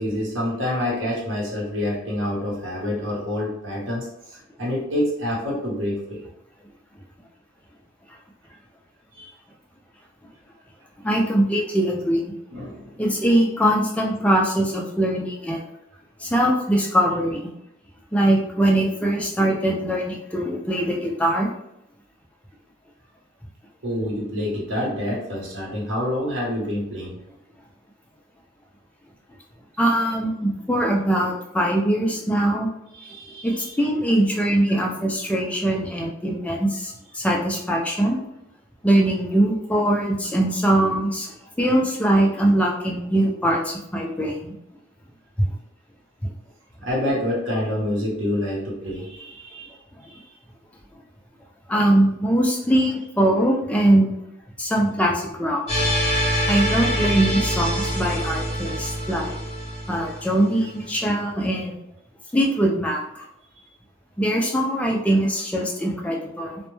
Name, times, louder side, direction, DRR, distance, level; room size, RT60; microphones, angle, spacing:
voice 1, 0.0-6.2 9.1-9.3 12.5-12.9 23.8-27.2 32.9-33.7 46.8-49.7 50.0-50.2, left 1 dB, 75° right, -4 dB, 0.9 m, -27 dB
voice 2, 11.0-12.3 13.0-15.6 16.2-17.4 18.1-21.5 29.8-32.7 33.4-38.2 38.8-44.5 46.2-46.3 51.7-54.1 54.6-55.6 56.5-59.4 59.9-61.8 62.3-63.3 64.2-66.6, right 1 dB, 5° left, -1 dB, 0.3 m, -22 dB
sound 1, 55.7-60.8, equal, 30° left, 0.7 m, -25 dB
2.1 x 2.1 x 3.0 m, 0.79 s
head